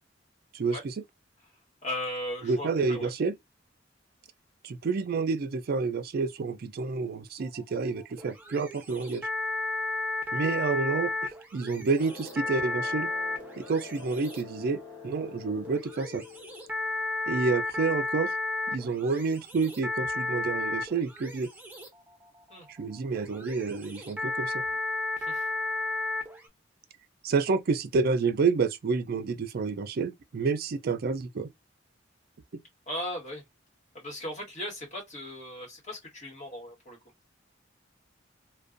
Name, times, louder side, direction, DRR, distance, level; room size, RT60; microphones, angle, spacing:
voice 1, 0.5-0.9 2.4-3.4 4.6-9.3 10.3-13.1 13.7-16.2 17.3-18.3 18.7-21.5 22.8-24.6 27.2-31.5, right 4 dB, 55° right, 0.4 m, -29 dB
voice 2, 1.8-3.1 22.5-22.7 25.2-25.4 32.9-33.4 33.9-37.0, left 1 dB, 40° left, 1.4 m, -37 dB
sound 1, 7.4-26.5, left 2 dB, 10° right, 0.6 m, -34 dB
sound 2, 12.0-17.0, left 4 dB, 20° left, 1.1 m, -46 dB
2.4 x 2.2 x 2.5 m
head